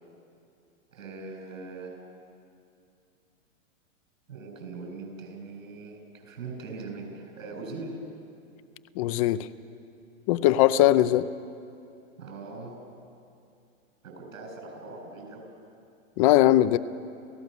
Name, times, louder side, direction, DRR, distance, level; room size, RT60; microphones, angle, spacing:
voice 1, 0.9-2.0 4.3-8.0 12.2-12.8 14.0-15.5, right 3 dB, 80° right, 3 dB, 7.8 m, -41 dB
voice 2, 9.0-9.5 10.3-11.3 16.2-16.8, left 14 dB, 25° left, 15 dB, 0.5 m, -20 dB
29.5 x 16.0 x 6.8 m, 2.5 s
hypercardioid pair, 140°, 40 cm